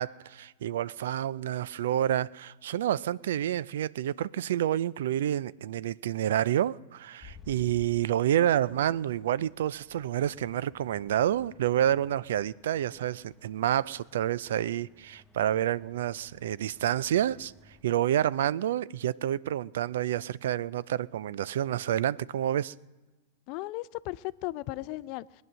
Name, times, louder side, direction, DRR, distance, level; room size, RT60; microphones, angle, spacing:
voice 1, 0.0-17.5 17.8-22.7, right 11 dB, 70° right, 0.4 m, -28 dB
sound 1, 7.2-17.8, left 4 dB, 15° left, 1.3 m, -57 dB
voice 2, 23.5-25.4, left 18 dB, 50° left, 0.5 m, -36 dB
21.5 x 9.1 x 6.3 m
hypercardioid pair, 100°, 0 cm